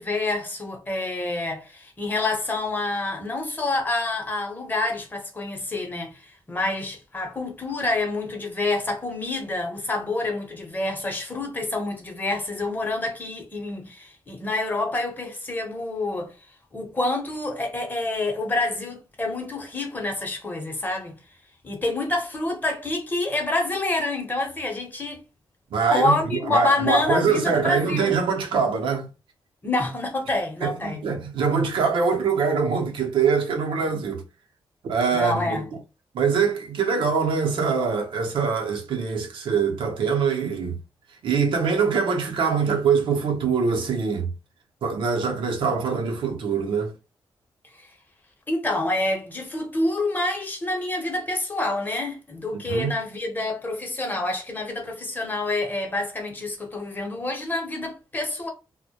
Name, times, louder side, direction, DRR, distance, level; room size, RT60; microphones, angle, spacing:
voice 1, 0.0-16.3 16.7-21.2 21.6-25.2 25.9-28.2 29.6-31.0 35.1-35.6 47.7-47.9 48.5-58.5, left 2 dB, 20° left, 0.8 m, -27 dB
voice 2, 25.7-29.1 30.6-34.2 34.8-35.6 36.1-40.8 41.2-44.3 44.8-46.9 52.7-52.9, right 5 dB, 75° right, 0.6 m, -23 dB
2.1 x 2.1 x 2.8 m
cardioid pair, 95°, 9 cm